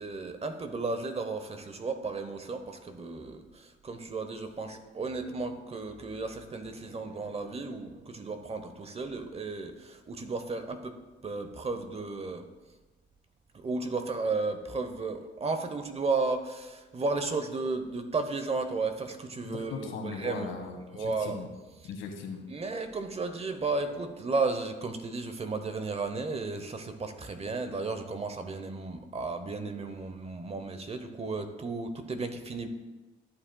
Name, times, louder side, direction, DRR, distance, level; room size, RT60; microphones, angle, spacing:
voice 1, 0.0-12.5 13.5-20.5 20.9-21.4 22.5-32.7, right 3 dB, 30° right, 8 dB, 0.9 m, -34 dB
sound 1, 5.0-10.0 17.6-18.2 18.5-18.6 19.1-22.5, right 3 dB, 75° right, 1.5 m, -57 dB
voice 2, 19.4-21.5 21.8-22.5, left 4 dB, 80° left, 3 dB, 1.7 m, -39 dB
13.0 x 8.8 x 2.3 m, 1.2 s
cardioid pair, 90°, 20 cm